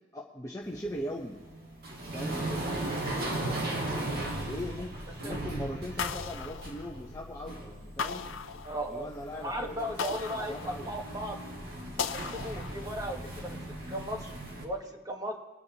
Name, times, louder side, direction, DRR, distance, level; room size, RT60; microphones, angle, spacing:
voice 1, 0.1-1.4 2.1-2.8 4.4-4.9 5.2-8.2 8.9-10.9, equal, 15° left, -2 dB, 1.0 m, -40 dB
sound 1, 0.6-14.7, right 1 dB, 50° right, 2.1 m, -38 dB
voice 2, 3.5-3.8 5.2-5.4 8.6-11.4 12.0-13.6 13.9-14.3 14.6-15.4, equal, 20° right, 2 dB, 1.4 m, -37 dB
sound 2, 6.0-7.3 8.0-9.2 10.0-11.2 12.0-13.2, left 6 dB, 75° left, 0.6 m, -37 dB
22.5 x 9.8 x 3.0 m, 1.4 s
head